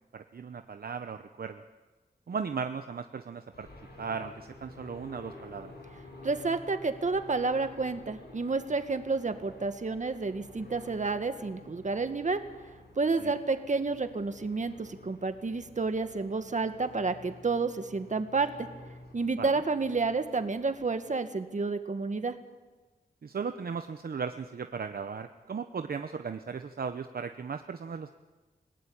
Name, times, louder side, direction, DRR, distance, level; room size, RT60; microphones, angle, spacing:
voice 1, 0.1-1.6 2.3-3.7 4.0-5.7 13.2-13.3 19.4-19.5 23.2-28.1, right 5 dB, 65° right, 8 dB, 0.9 m, -37 dB
sound 1, 3.5-21.1, left 2 dB, 90° left, 7.9 m, -51 dB
voice 2, 6.2-12.4 13.0-18.7 19.1-22.4, right 4 dB, 45° right, 8 dB, 1.8 m, -30 dB
29.5 x 18.0 x 8.8 m, 1.3 s
wide cardioid pair, 100°, 17 cm